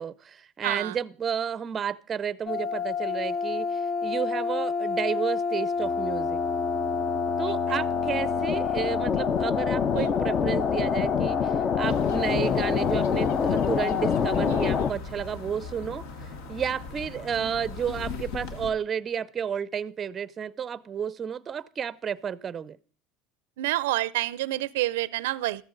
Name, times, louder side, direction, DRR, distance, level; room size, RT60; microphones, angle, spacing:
voice 1, 0.0-6.4 7.4-22.8, right 7 dB, 25° right, 0.5 m, -32 dB
voice 2, 0.6-1.0 7.7-7.8 10.0-10.2 14.5-15.0 17.4-17.7 23.6-25.6, right 16 dB, 90° right, 0.5 m, -29 dB
sound 1, 2.5-14.9, left 6 dB, 35° left, 0.6 m, -26 dB
sound 2, 11.8-18.7, left 4 dB, 80° left, 2.0 m, -39 dB
14.0 x 14.0 x 3.9 m
supercardioid pair, 145°, 0 cm